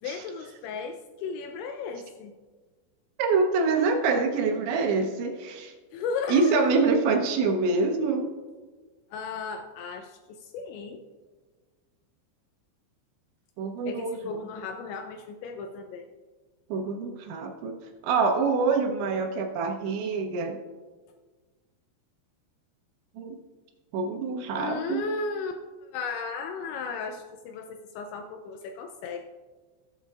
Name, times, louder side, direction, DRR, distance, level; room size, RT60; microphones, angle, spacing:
voice 1, 0.0-2.3 5.9-6.7 9.1-11.0 13.9-16.1 24.6-25.5 25.9-29.2, left 5 dB, 85° left, 5 dB, 2.7 m, -35 dB
voice 2, 3.2-5.7 6.3-8.3 13.6-14.1 16.7-17.7 18.0-20.6 23.2-23.4 23.9-25.0, right 4 dB, 80° right, 3 dB, 2.8 m, -25 dB
18.0 x 8.3 x 2.3 m, 1.4 s
omnidirectional pair, 5.7 m